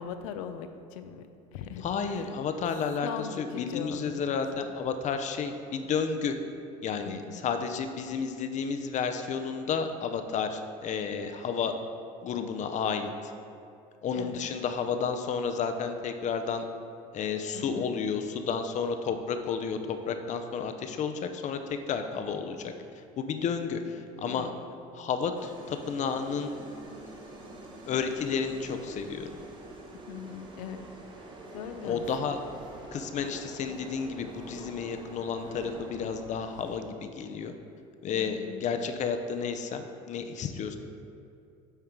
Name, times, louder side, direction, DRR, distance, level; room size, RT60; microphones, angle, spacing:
voice 1, 0.0-2.3 3.0-4.2 4.5-4.7 7.0-7.4 14.1-14.4 17.5-17.9 24.3-24.5 30.1-30.9 31.1-32.1 38.1-38.7, left 7 dB, 85° left, 9 dB, 0.5 m, -41 dB
voice 2, 1.8-6.3 6.8-11.8 12.2-13.1 14.0-16.6 17.1-22.7 23.2-24.5 25.0-26.5 27.9-29.3 31.8-32.4 32.9-37.5 38.0-40.8, left 6 dB, 45° left, 7 dB, 0.6 m, -31 dB
sound 1, 25.4-36.8, right 1 dB, 25° right, 1.1 m, -46 dB
8.8 x 3.6 x 4.6 m, 2.5 s
supercardioid pair, 95°, 17 cm